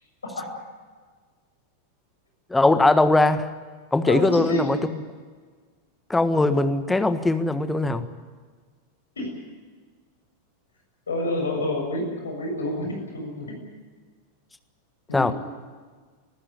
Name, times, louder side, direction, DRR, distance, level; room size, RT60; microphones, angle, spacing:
voice 1, 2.5-3.5 3.9-4.8 6.1-8.1 15.1-15.3, left 2 dB, 10° left, 10 dB, 1.5 m, -20 dB
voice 2, 4.0-4.7 9.1-9.3 11.1-13.6 15.1-15.3, left 1 dB, 70° left, 1 dB, 6.9 m, -28 dB
24.5 x 15.5 x 9.8 m, 1.5 s
figure-of-eight pair, 90°, 0 cm